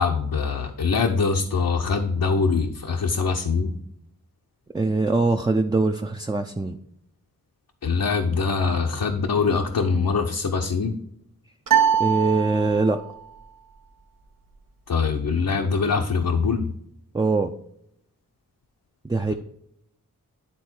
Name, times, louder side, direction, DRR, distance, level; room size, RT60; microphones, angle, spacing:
voice 1, 0.0-3.8 7.8-10.9 14.9-16.7, left 4 dB, 70° left, 2 dB, 0.8 m, -23 dB
voice 2, 4.7-6.8 12.0-13.0 17.1-17.5 19.0-19.3, right 3 dB, 10° right, 5 dB, 0.5 m, -22 dB
sound 1, 11.7-13.1, right 8 dB, 65° right, 0.8 m, -22 dB
10.0 x 3.7 x 4.4 m, 0.76 s
cardioid pair, 45°, 35 cm